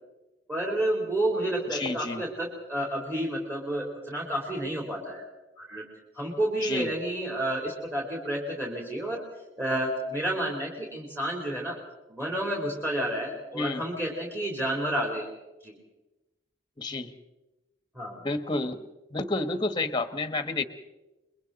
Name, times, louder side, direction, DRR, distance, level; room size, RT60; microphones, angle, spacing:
voice 1, 0.5-5.3 5.6-5.8 6.2-9.2 9.6-11.8 12.1-15.3 15.6-15.7 18.0-18.2, right 1 dB, 15° right, -2 dB, 3.6 m, -30 dB
voice 2, 1.7-2.2 6.6-6.9 13.5-13.8 16.8-17.1 18.2-18.8 19.1-20.6, left 2 dB, 25° left, 10 dB, 1.4 m, -30 dB
30.0 x 22.5 x 4.1 m, 1.0 s
head